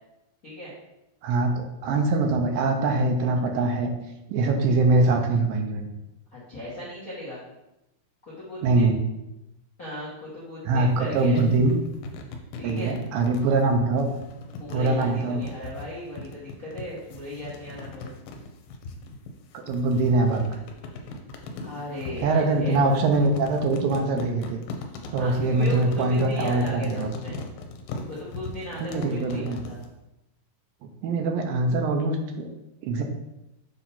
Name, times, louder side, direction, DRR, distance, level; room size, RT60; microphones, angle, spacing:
voice 1, 1.2-3.9 4.3-5.9 8.6-9.0 10.7-11.8 12.6-14.1 14.7-15.4 19.7-20.4 22.2-24.6 25.1-27.1 28.8-29.6 30.8-32.5 32.8-33.0, right 2 dB, 80° right, 4 dB, 2.3 m, -23 dB
voice 2, 6.3-7.4 8.4-8.9 9.8-11.4 12.6-12.9 14.6-18.1 21.6-22.9 25.2-27.4 28.0-29.8, left 1 dB, 55° left, -8 dB, 1.0 m, -36 dB
sound 1, 10.8-29.9, left 2 dB, 80° left, 2.5 m, -39 dB
7.1 x 2.8 x 5.6 m, 0.93 s
omnidirectional pair, 4.2 m